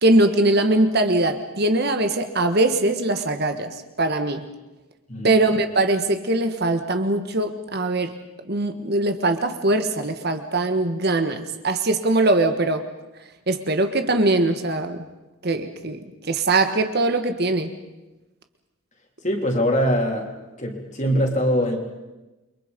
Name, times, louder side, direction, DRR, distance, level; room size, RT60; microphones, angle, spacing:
voice 1, 0.0-4.5 5.2-8.2 8.5-12.9 13.5-15.1 15.4-17.7, right 2 dB, 50° right, 7 dB, 1.6 m, -21 dB
voice 2, 19.2-20.3 20.6-21.8, equal, 35° left, 2 dB, 3.6 m, -22 dB
29.5 x 24.0 x 5.3 m, 1.1 s
head